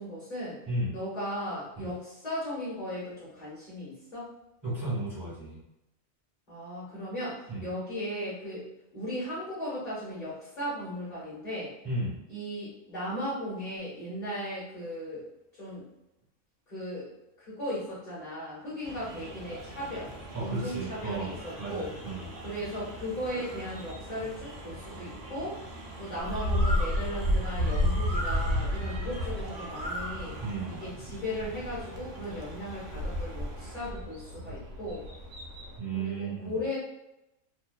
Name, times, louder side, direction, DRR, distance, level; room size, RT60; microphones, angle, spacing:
voice 1, 0.0-0.6 0.9-4.3 6.5-8.7 8.9-11.7 12.3-15.2 15.6-15.8 16.7-17.1 17.4-20.1 20.4-21.9 22.4-25.6 26.0-30.3 30.8-35.0 35.9-36.8, equal, 40° left, -10 dB, 1.0 m, -36 dB
voice 2, 0.7-1.0 1.8-1.9 4.6-5.6 7.5-7.7 11.8-12.2 20.3-22.3 30.4-30.8 35.8-36.6, right 2 dB, 20° right, -10 dB, 1.2 m, -34 dB
sound 1, 18.8-33.9, right 2 dB, 60° right, 0.5 m, -44 dB
Bird, 26.2-35.8, left 1 dB, 90° right, 1.0 m, -31 dB
2.7 x 2.2 x 2.2 m, 0.91 s
omnidirectional pair, 1.4 m